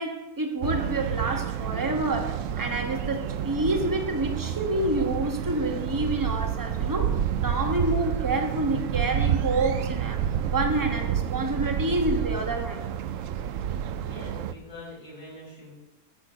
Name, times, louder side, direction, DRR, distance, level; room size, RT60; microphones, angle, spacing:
voice 1, 0.0-10.2 10.5-12.8, right 2 dB, 15° right, 1.2 m, -28 dB
sound 1, 0.6-14.5, right 9 dB, 65° right, 0.9 m, -29 dB
voice 2, 14.1-15.7, left 1 dB, 55° left, 5.4 m, -43 dB
10.5 x 8.5 x 6.1 m
omnidirectional pair, 1.6 m